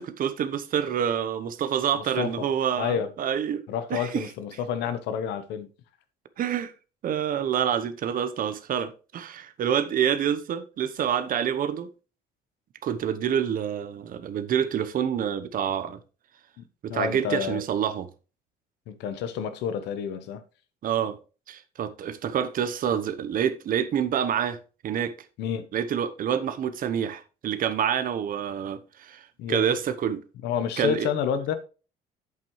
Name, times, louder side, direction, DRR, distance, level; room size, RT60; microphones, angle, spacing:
voice 1, 0.0-4.3 6.4-6.7 7.0-11.9 12.8-16.0 16.8-18.1 20.8-21.2 21.5-24.6 24.8-25.1 25.7-30.2 30.8-31.1, right 9 dB, 55° right, 1.0 m, -27 dB
voice 2, 1.9-2.5 2.8-3.1 3.7-5.7 16.6-16.7 16.9-17.6 18.9-20.4 25.4-25.7 29.4-29.7 30.4-31.5, left 8 dB, 85° left, 1.1 m, -29 dB
8.3 x 7.5 x 3.2 m
cardioid pair, 110°, 17 cm